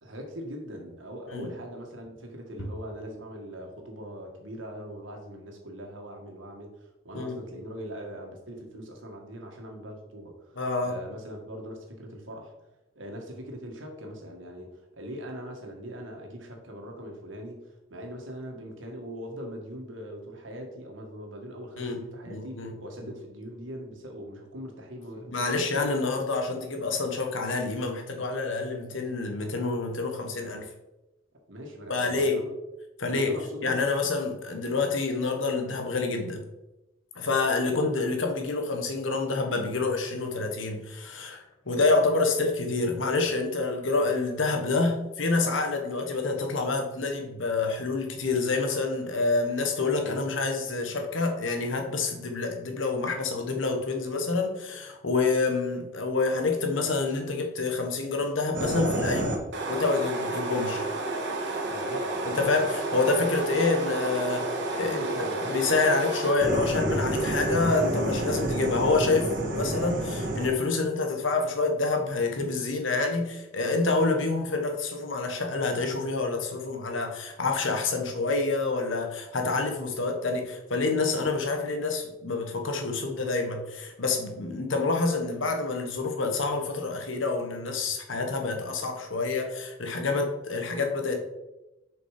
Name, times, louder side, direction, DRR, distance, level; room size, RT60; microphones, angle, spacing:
voice 1, 0.0-12.5 12.9-25.9 31.5-32.5 33.1-33.8 61.7-62.5 64.6-65.8, equal, 80° right, 2 dB, 1.7 m, -41 dB
voice 2, 10.6-10.9 21.8-22.0 22.2-22.7 23.0-23.1 25.3-30.7 31.9-32.4 33.0-33.3 33.6-36.4 37.1-59.4 59.7-60.8 62.3-64.5 64.7-65.0 65.4-91.2, left 3 dB, 80° left, 4 dB, 1.3 m, -27 dB
sound 1, 58.5-70.5, right 1 dB, 65° right, 1.4 m, -30 dB
6.7 x 5.2 x 4.9 m, 0.98 s
head